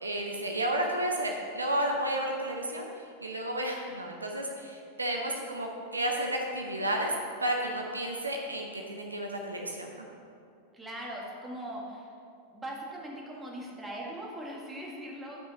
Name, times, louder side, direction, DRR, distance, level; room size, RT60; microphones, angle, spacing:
voice 1, 0.0-2.8 3.2-7.1 7.4-10.1, right 1 dB, 80° right, 1 dB, 0.9 m, -32 dB
voice 2, 10.7-12.1 12.5-15.5, right 1 dB, 10° right, -3 dB, 1.8 m, -40 dB
10.5 x 6.2 x 4.1 m, 2.4 s
figure-of-eight pair, 90°, 0 cm